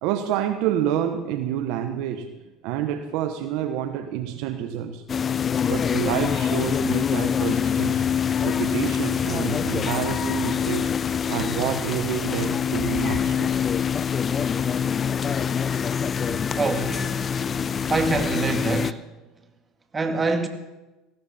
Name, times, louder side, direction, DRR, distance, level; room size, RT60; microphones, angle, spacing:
voice 1, 0.0-2.3 2.6-5.0 5.6-8.1 8.4-10.9 11.3-13.5, right 10 dB, 70° right, 1.1 m, -28 dB
sound 1, 5.1-18.9, left 7 dB, 35° left, 0.5 m, -25 dB
voice 2, 16.5-17.3 17.9-19.1 19.9-20.5, right 3 dB, 20° right, 2.1 m, -25 dB
18.0 x 15.5 x 4.3 m
hypercardioid pair, 90°, 0 cm